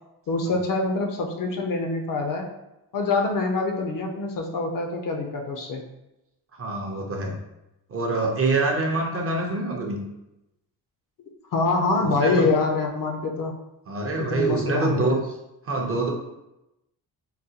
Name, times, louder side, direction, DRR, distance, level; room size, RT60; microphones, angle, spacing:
voice 1, 0.3-2.5 2.9-5.8 11.5-13.6 14.2-15.1, left 3 dB, 55° left, 2 dB, 0.5 m, -25 dB
voice 2, 6.6-7.4 7.9-10.0 12.0-12.5 13.9-15.2 15.7-16.1, right 3 dB, 35° right, 0 dB, 0.4 m, -25 dB
3.9 x 2.1 x 2.7 m, 0.92 s
wide cardioid pair, 155°, 41 cm